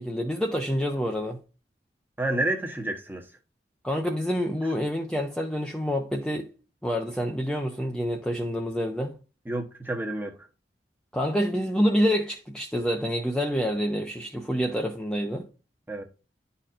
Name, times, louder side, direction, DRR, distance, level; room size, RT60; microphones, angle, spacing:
voice 1, 0.0-1.4 3.8-6.5 6.8-9.2 11.1-15.5, equal, 5° left, 0.6 m, -27 dB
voice 2, 2.2-3.2 9.5-10.3 15.9-16.0, right 1 dB, 10° right, 1.0 m, -29 dB
11.0 x 4.2 x 2.5 m
head